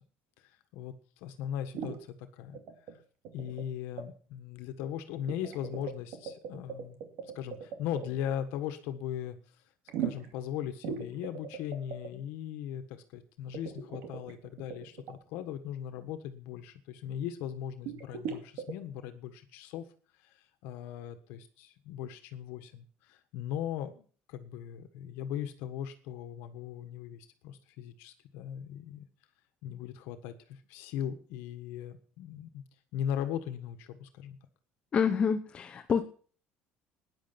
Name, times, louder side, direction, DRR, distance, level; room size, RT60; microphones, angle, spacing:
voice 1, 1.2-2.6 3.3-7.0 7.3-9.4 10.0-19.8 20.2-20.4 20.6-29.0 29.6-32.6 32.9-34.4, left 10 dB, 80° left, 9 dB, 1.4 m, -38 dB
sound 1, 1.7-2.0 2.5-2.9 3.2-3.7 4.0-4.1 5.3-8.1 9.9-10.4 10.8-12.1 13.5-15.1 17.8-18.7, right 8 dB, 70° right, 2.4 m, -39 dB
voice 2, 34.9-36.0, left 6 dB, 30° left, 5 dB, 0.9 m, -27 dB
13.5 x 10.0 x 5.8 m, 0.43 s
cardioid pair, 145°, 4 cm